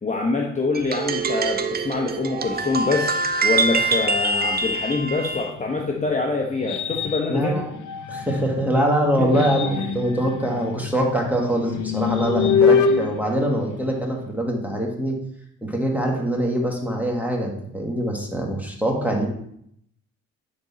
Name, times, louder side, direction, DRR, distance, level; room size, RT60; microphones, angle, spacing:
voice 1, 0.0-3.1 3.4-7.6 9.2-9.4, left 3 dB, 25° left, 0 dB, 1.0 m, -25 dB
sound 1, 0.7-5.5, right 3 dB, 30° right, 0.7 m, -24 dB
sound 2, 5.5-8.6 9.1-14.3, left 6 dB, 75° left, 0.7 m, -25 dB
voice 2, 7.3-7.7 8.1-15.2 15.6-19.2, right 1 dB, 5° right, 0 dB, 1.9 m, -23 dB
10.5 x 4.0 x 4.2 m, 0.71 s
cardioid pair, 90°, 30 cm